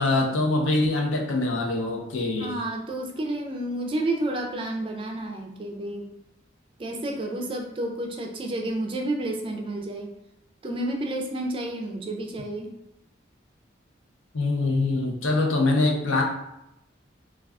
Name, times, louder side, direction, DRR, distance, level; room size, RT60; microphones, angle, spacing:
voice 1, 0.0-2.5 14.3-16.2, left 2 dB, 90° left, 1 dB, 0.6 m, -24 dB
voice 2, 2.4-6.1 6.8-10.1 10.6-12.7, right 1 dB, 25° right, 2 dB, 0.3 m, -30 dB
2.3 x 2.3 x 3.4 m, 0.85 s
head